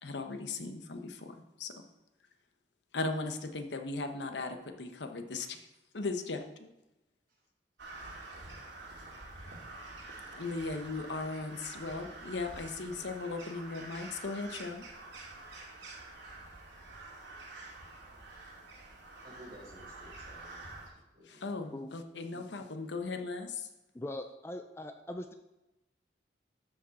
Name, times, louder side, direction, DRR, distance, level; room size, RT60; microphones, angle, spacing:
voice 1, 0.0-1.7 2.9-5.6 5.9-6.7 10.3-14.8 21.3-23.7, left 3 dB, 75° left, 6 dB, 0.9 m, -38 dB
Crow, 7.8-20.9, right 2 dB, 85° right, 2.1 m, -48 dB
voice 2, 19.2-21.7, right 1 dB, 55° right, -4 dB, 3.6 m, -55 dB
voice 3, 23.9-25.3, left 1 dB, 15° left, 7 dB, 0.4 m, -41 dB
12.5 x 5.1 x 4.1 m, 0.96 s
head